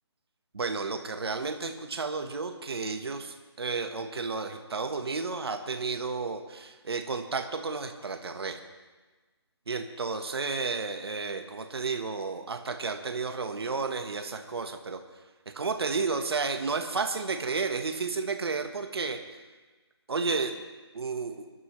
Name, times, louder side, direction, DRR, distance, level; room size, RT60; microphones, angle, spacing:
voice 1, 0.5-8.6 9.7-15.0 15.5-19.2 20.1-20.5 20.9-21.5, right 4 dB, 60° right, 5 dB, 1.3 m, -32 dB
28.0 x 11.0 x 3.2 m, 1.3 s
hypercardioid pair, 170°, 15 cm